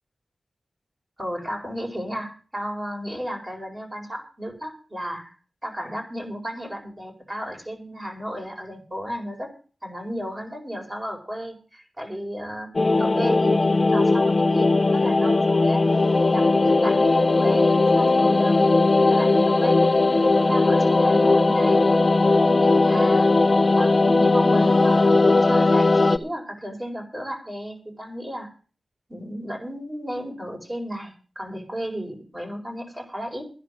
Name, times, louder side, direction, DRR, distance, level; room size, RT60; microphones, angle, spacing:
voice 1, 1.2-5.3 5.6-9.5 9.8-12.7 13.0-15.8 16.2-21.8 22.4-23.3 23.8-28.5 29.1-33.5, equal, 25° right, 1 dB, 4.7 m, -33 dB
sound 1, 12.8-26.2, left 3 dB, 45° left, 0.8 m, -18 dB
11.0 x 10.5 x 6.3 m, 0.39 s
cardioid pair, 60°, 0 cm